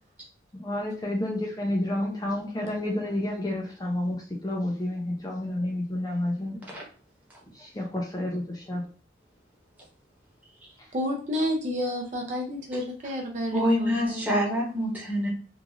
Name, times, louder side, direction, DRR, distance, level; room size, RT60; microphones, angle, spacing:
voice 1, 0.5-6.6 7.5-8.8, left 1 dB, 20° left, -1 dB, 0.4 m, -30 dB
voice 2, 10.9-14.2, equal, 40° right, 1 dB, 0.5 m, -30 dB
voice 3, 13.5-15.3, equal, 10° right, -4 dB, 1.0 m, -26 dB
3.0 x 2.4 x 2.4 m, 0.40 s
head